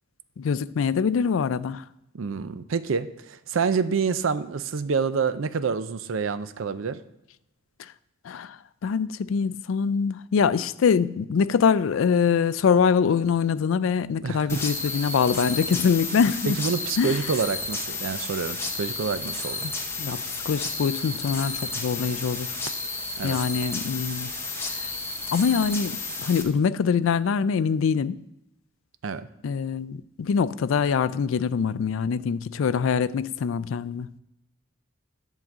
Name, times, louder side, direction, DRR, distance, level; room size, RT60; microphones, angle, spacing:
voice 1, 0.4-1.8 8.3-8.6 8.8-16.6 17.0-17.2 19.6-19.7 20.0-22.5 23.2-24.3 25.3-28.2 29.4-34.1, left 6 dB, 75° left, 0.4 m, -24 dB
voice 2, 2.1-7.0 14.2-14.6 16.5-19.7 23.2-23.4 29.0-29.3, right 5 dB, 80° right, 0.5 m, -27 dB
sound 1, 14.5-26.4, left 3 dB, 15° left, 0.9 m, -32 dB
10.5 x 3.8 x 7.2 m
head